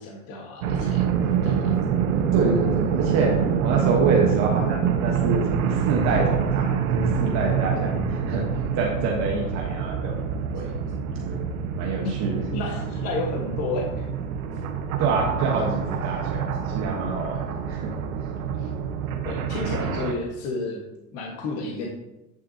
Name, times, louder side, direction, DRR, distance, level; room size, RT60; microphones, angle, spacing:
voice 1, 0.0-1.8 12.0-12.2 12.5-14.1 18.6-18.7 19.2-20.8 21.1-21.9, left 3 dB, 35° left, -1 dB, 1.5 m, -31 dB
sound 1, 0.6-20.1, right 7 dB, 90° right, 1.1 m, -26 dB
voice 2, 2.3-3.3 3.6-8.0 8.3-8.4 8.8-10.7 11.2-12.4 15.0-17.9, right 4 dB, 40° right, 0 dB, 1.2 m, -26 dB
10.0 x 6.3 x 2.8 m, 0.94 s
supercardioid pair, 145°, 40 cm